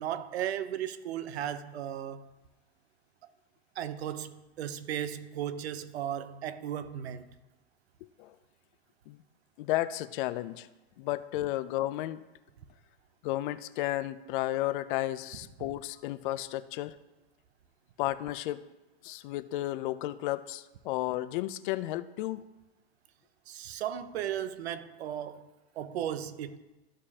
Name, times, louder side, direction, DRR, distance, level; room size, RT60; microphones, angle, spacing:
voice 1, 0.0-2.3 3.8-7.3 15.6-15.7 23.5-25.5 25.7-26.6, right 10 dB, 80° right, 0.7 m, -36 dB
voice 2, 9.6-10.7 11.0-12.2 13.2-16.9 18.0-18.6 19.0-22.5, left 15 dB, 55° left, 0.5 m, -33 dB
14.0 x 4.9 x 2.8 m
hypercardioid pair, 125°, 32 cm